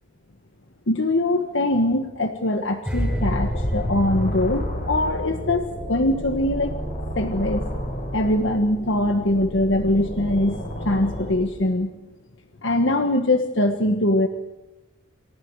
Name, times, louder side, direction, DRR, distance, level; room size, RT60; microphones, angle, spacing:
voice 1, 0.9-6.7 7.1-7.7 8.1-11.9 12.6-14.3, left 1 dB, 65° left, 6 dB, 1.5 m, -22 dB
sound 1, 2.9-6.0 6.3-6.6, equal, 5° right, 5.8 m, -29 dB
sound 2, 3.0-11.3, equal, 40° left, 7.9 m, -32 dB
28.5 x 28.0 x 4.9 m, 1.0 s
head